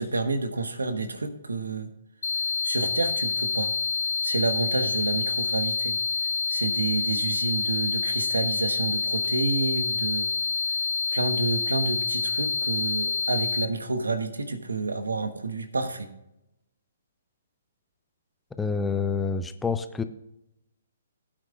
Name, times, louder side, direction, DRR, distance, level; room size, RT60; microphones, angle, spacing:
voice 1, 0.0-1.9 2.6-3.7 4.2-6.0 6.5-10.3 11.1-16.1, right 3 dB, 80° right, 7 dB, 1.2 m, -29 dB
sound 1, 2.2-13.7, left 5 dB, 70° left, 0.4 m, -27 dB
voice 2, 18.6-20.0, left 5 dB, 10° left, 10 dB, 0.5 m, -27 dB
16.0 x 8.9 x 2.3 m, 0.86 s
figure-of-eight pair, 130°, 0 cm